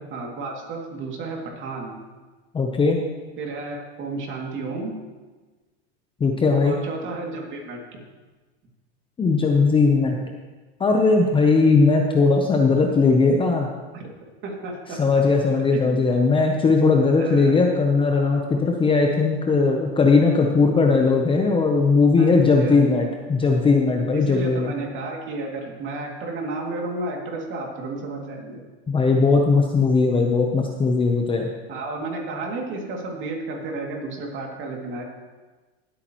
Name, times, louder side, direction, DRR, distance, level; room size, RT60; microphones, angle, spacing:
voice 1, 0.1-2.0 3.4-4.9 6.6-8.0 13.9-14.1 14.4-15.0 15.7-16.0 17.2-17.6 22.2-22.9 24.1-28.6 31.7-35.0, right 2 dB, 35° right, 0 dB, 2.5 m, -32 dB
voice 2, 2.5-3.0 6.2-6.8 9.2-10.2 10.8-13.7 15.0-24.7 28.9-31.5, left 4 dB, 15° left, 2 dB, 0.8 m, -19 dB
19.5 x 8.6 x 3.1 m, 1.3 s
supercardioid pair, 135°, 34 cm